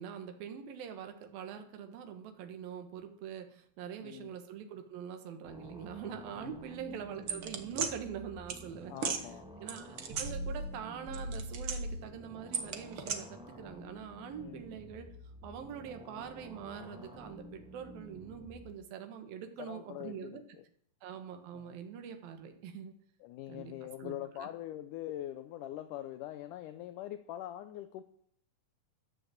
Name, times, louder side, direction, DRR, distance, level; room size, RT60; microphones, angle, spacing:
voice 1, 0.0-9.0 9.6-15.1 15.4-20.4 21.0-22.9 23.5-23.7 24.0-24.5, right 8 dB, 80° right, 6 dB, 3.2 m, -44 dB
voice 2, 4.0-4.3 6.4-6.6 8.9-9.4 14.4-14.7 19.6-20.6 21.5-21.8 23.2-28.0, left 12 dB, 75° left, 10 dB, 2.1 m, -43 dB
sound 1, 5.4-18.7, equal, 5° right, 1.1 m, -51 dB
sound 2, 7.3-7.9 8.5-8.6 9.0-9.2 9.7-10.8 11.1-12.0 12.5-13.2, right 4 dB, 50° right, 1.7 m, -35 dB
13.5 x 10.5 x 7.7 m, 0.64 s
omnidirectional pair, 4.1 m